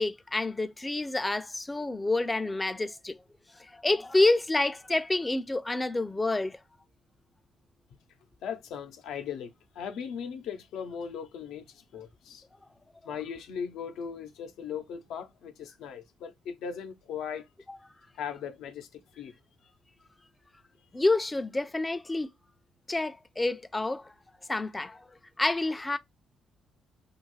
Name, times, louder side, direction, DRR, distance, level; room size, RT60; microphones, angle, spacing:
voice 1, 0.0-3.2 3.6-6.6 17.7-17.8 20.9-22.3 22.9-24.1 24.5-26.0, left 2 dB, 15° left, 0.3 m, -28 dB
voice 2, 8.4-12.5 13.0-17.5 18.1-19.4, left 7 dB, 85° left, 0.5 m, -38 dB
2.5 x 2.3 x 3.1 m
cardioid pair, 90°, 0 cm